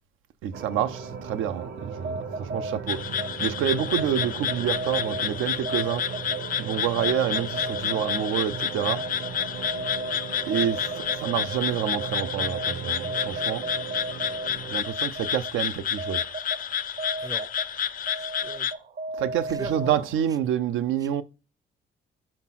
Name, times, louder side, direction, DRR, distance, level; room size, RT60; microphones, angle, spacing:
voice 1, 0.4-3.0 3.4-6.1 6.6-9.0 10.5-13.6 14.7-16.2 19.2-21.2, right 10 dB, 85° right, 0.6 m, -28 dB
sound 1, 0.5-14.8, right 6 dB, 70° right, 1.3 m, -37 dB
sound 2, 1.9-20.4, right 2 dB, 50° right, 0.7 m, -37 dB
sound 3, 2.9-18.7, left 9 dB, 45° left, 0.4 m, -30 dB
voice 2, 16.6-17.5 18.1-18.7 19.5-20.1 21.0-21.1, right 4 dB, 20° right, 0.5 m, -41 dB
4.3 x 4.2 x 5.7 m
cardioid pair, 90°, 20 cm